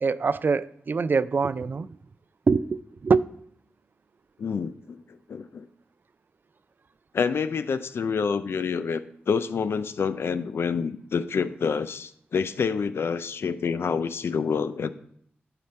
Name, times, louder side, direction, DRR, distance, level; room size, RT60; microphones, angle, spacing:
voice 1, 0.0-1.9 2.5-3.3, right 4 dB, 50° right, 0.3 m, -24 dB
voice 2, 4.4-5.7 7.1-14.9, left 6 dB, 75° left, 0.4 m, -28 dB
10.5 x 4.2 x 4.4 m
cardioid pair, 45°, 4 cm